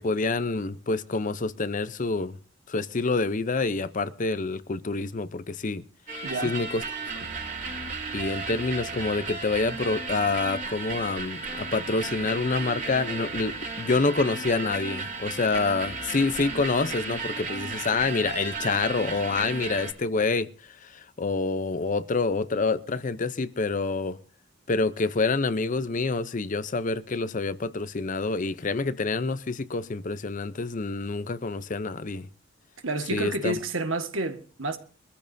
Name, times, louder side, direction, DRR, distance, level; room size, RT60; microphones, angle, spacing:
voice 1, 0.0-2.4 2.7-5.8 6.4-6.8 7.2-7.3 8.1-24.2 24.7-32.3 33.1-33.5, left 3 dB, 40° left, 0.6 m, -27 dB
sound 1, 6.1-19.9, right 4 dB, 40° right, 3.0 m, -34 dB
voice 2, 6.2-6.5 32.8-34.8, right 2 dB, 85° right, 1.7 m, -29 dB
24.0 x 14.0 x 2.7 m
head